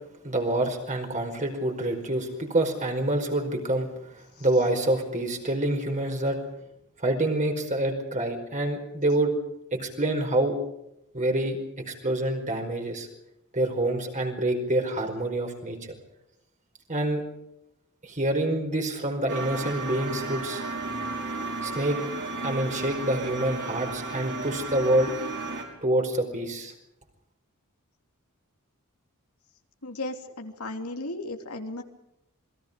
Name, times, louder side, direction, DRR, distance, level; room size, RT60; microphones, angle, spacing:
voice 1, 0.2-3.9 4.4-6.4 7.0-9.3 9.7-10.6 11.1-13.1 13.5-15.9 16.9-17.2 18.0-20.6 21.6-22.0 22.4-25.1 25.8-26.7, right 1 dB, 35° right, 4 dB, 4.9 m, -27 dB
sound 1, 19.3-25.6, right 3 dB, 55° right, 6.0 m, -34 dB
voice 2, 29.8-31.8, left 2 dB, 75° left, 4 dB, 3.0 m, -35 dB
28.0 x 21.5 x 5.2 m, 0.84 s
head